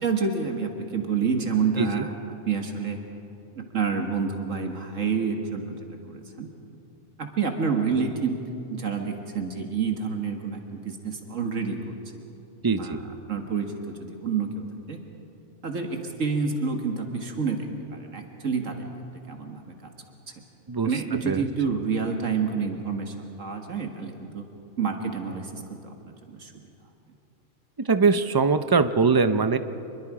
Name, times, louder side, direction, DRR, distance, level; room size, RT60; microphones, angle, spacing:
voice 1, 0.0-2.1 2.5-3.0 3.6-6.5 7.2-8.4 8.7-11.9 12.7-15.0 15.6-18.9 19.3-19.9 20.8-24.5 24.8-26.5, right 5 dB, 70° right, 4 dB, 2.0 m, -28 dB
voice 2, 12.6-13.0 20.7-20.9 21.3-21.5 27.8-29.6, right 4 dB, 35° right, 11 dB, 0.3 m, -22 dB
26.0 x 22.0 x 4.9 m, 2.8 s
omnidirectional pair, 1.4 m